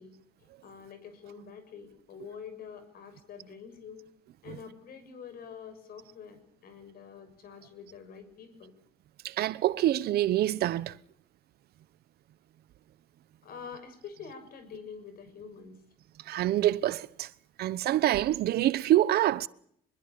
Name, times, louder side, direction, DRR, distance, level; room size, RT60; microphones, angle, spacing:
voice 1, 0.0-4.0 4.4-8.7 13.4-15.8, left 6 dB, 60° left, 6.7 m, -46 dB
voice 2, 9.2-11.0 16.3-17.3 17.6-19.5, right 13 dB, 70° right, 1.0 m, -26 dB
25.0 x 22.0 x 7.0 m
cardioid pair, 110°, 17 cm